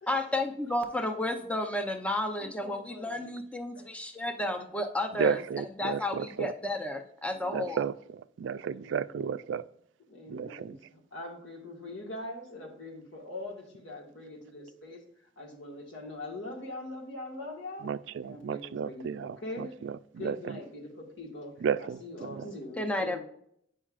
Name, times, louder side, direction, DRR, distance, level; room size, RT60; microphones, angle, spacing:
voice 1, 0.1-5.4 5.8-7.8 22.4-23.2, left 1 dB, 5° left, 5 dB, 0.6 m, -32 dB
voice 2, 2.4-3.2 7.3-7.9 8.6-9.2 10.1-15.0 15.4-17.9 18.2-19.7 20.2-21.5 21.8-23.2, left 2 dB, 90° left, 0 dB, 1.9 m, -43 dB
voice 3, 5.2-6.5 7.5-7.9 8.4-9.6 10.3-10.8 17.8-20.6 21.6-22.5, right 7 dB, 70° right, 15 dB, 0.3 m, -33 dB
8.6 x 5.5 x 2.4 m, 0.69 s
head